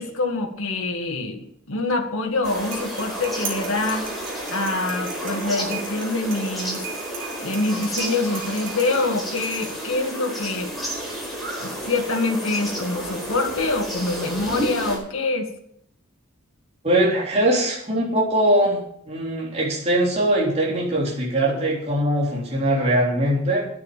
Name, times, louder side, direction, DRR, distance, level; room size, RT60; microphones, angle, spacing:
voice 1, 0.0-4.1 4.5-6.8 7.4-10.7 11.6-15.5, left 3 dB, 70° left, 2 dB, 2.0 m, -25 dB
sound 1, 2.3-10.0, right 6 dB, 55° right, 3.6 m, -38 dB
sound 2, 2.4-15.0, right 1 dB, ahead, 5.0 m, -31 dB
voice 2, 16.8-18.8 19.1-23.7, right 1 dB, 30° right, -4 dB, 3.5 m, -21 dB
10.5 x 9.5 x 7.4 m, 0.69 s
head